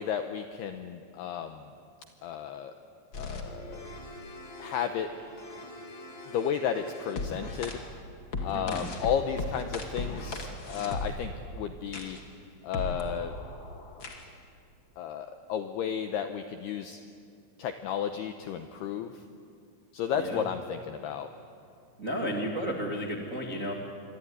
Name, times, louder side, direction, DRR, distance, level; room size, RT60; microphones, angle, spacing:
voice 1, 0.0-1.7 2.2-2.7 3.2-3.8 4.6-5.1 6.3-7.8 8.4-12.2 12.6-13.3 15.0-17.0 17.6-19.2 19.9-21.3, left 8 dB, 85° left, 7 dB, 2.3 m, -33 dB
sound 1, 3.1-7.7 8.3-11.4 11.9-12.2 12.7-14.3, left 2 dB, 45° left, 1.6 m, -38 dB
voice 2, 8.5-8.9 20.1-20.4 22.0-23.7, equal, 85° right, 1 dB, 0.7 m, -33 dB
27.0 x 23.0 x 9.7 m, 2.4 s
omnidirectional pair, 5.9 m